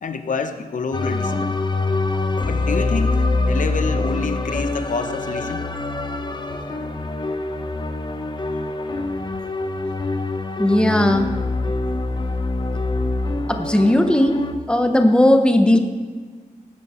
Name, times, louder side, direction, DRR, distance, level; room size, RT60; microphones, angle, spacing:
voice 1, 0.0-1.6 2.4-5.6, left 4 dB, 60° left, 8 dB, 0.9 m, -28 dB
sound 1, 0.9-14.5, left 2 dB, 30° left, 0.8 m, -24 dB
voice 2, 10.6-11.3 13.5-14.4 14.7-15.8, left 1 dB, 5° left, 6 dB, 0.9 m, -16 dB
18.5 x 9.6 x 4.4 m, 1.5 s
wide cardioid pair, 140°, 15 cm